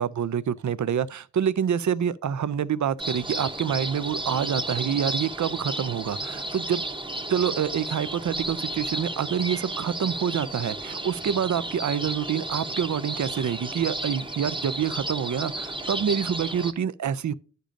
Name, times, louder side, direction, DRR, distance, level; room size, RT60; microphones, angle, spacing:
voice 1, 0.0-6.8 7.3-17.3, right 8 dB, 70° right, 0.5 m, -27 dB
sound 1, 3.0-16.7, right 1 dB, 15° right, 0.8 m, -33 dB
10.0 x 6.7 x 2.5 m
wide cardioid pair, 65°, 30 cm